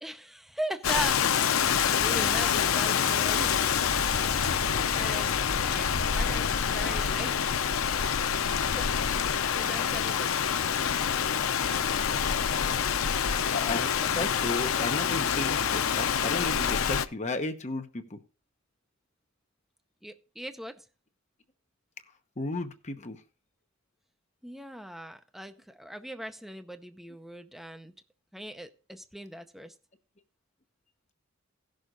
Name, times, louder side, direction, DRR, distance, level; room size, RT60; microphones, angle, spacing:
voice 1, 0.0-3.6 4.4-7.5 8.0-8.1 8.7-9.2 9.5-10.6 11.9-13.1 14.0-14.2 20.0-20.9 24.4-27.9 28.3-29.7, right 1 dB, ahead, 7 dB, 0.6 m, -40 dB
Rain, 0.8-17.0, left 7 dB, 80° left, 0.6 m, -27 dB
sound 1, 1.7-7.3, right 3 dB, 55° right, 0.6 m, -42 dB
voice 2, 13.5-13.9 14.1-18.2 22.4-23.2, left 2 dB, 35° left, 7 dB, 1.0 m, -33 dB
16.0 x 6.5 x 3.8 m, 0.36 s
head